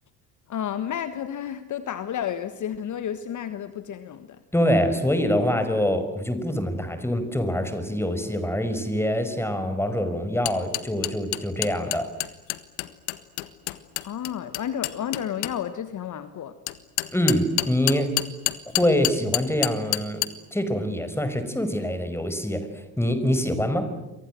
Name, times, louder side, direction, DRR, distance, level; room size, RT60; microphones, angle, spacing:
voice 1, 0.5-4.4 14.0-16.5, left 9 dB, 40° left, 11 dB, 1.6 m, -31 dB
voice 2, 4.5-12.1 17.1-18.2 18.8-20.2 20.5-22.7 23.0-23.9, equal, 5° left, 9 dB, 5.5 m, -25 dB
sound 1, 10.4-15.5 16.7-20.3, left 20 dB, 70° left, 1.6 m, -27 dB
30.0 x 24.0 x 7.7 m, 0.99 s
hypercardioid pair, 60°, 44 cm